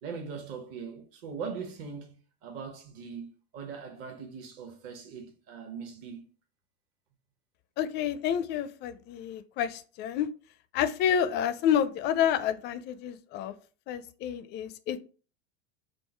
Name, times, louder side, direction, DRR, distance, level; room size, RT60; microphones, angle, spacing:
voice 1, 0.0-2.1 2.4-6.3, right 6 dB, 45° right, 1.0 m, -40 dB
voice 2, 7.8-10.3 10.7-13.5 13.9-15.0, left 9 dB, 35° left, 0.4 m, -29 dB
3.6 x 2.0 x 4.2 m
hypercardioid pair, 90°, 32 cm